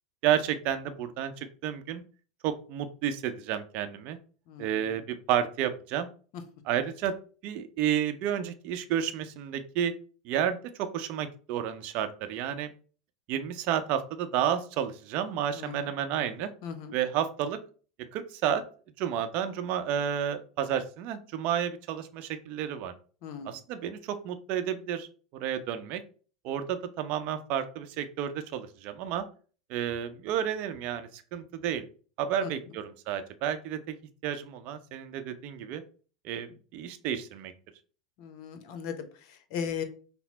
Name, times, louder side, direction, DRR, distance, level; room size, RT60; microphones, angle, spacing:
voice 1, 0.2-2.0 2.4-4.2 4.6-6.1 6.6-7.1 7.4-9.9 10.2-12.7 13.3-16.5 16.9-17.6 18.1-18.6 19.0-22.9 23.4-25.1 25.3-26.0 26.4-29.2 29.7-31.9 32.2-33.9 34.2-35.8 36.2-37.5, right 9 dB, 45° right, 8 dB, 0.6 m, -31 dB
voice 2, 4.5-5.1 6.3-6.4 15.5-15.9 16.6-17.0 23.2-23.6 32.4-32.7 38.2-39.8, left 7 dB, 50° left, 9 dB, 0.8 m, -38 dB
5.7 x 2.0 x 4.0 m, 0.39 s
figure-of-eight pair, 85°, 3 cm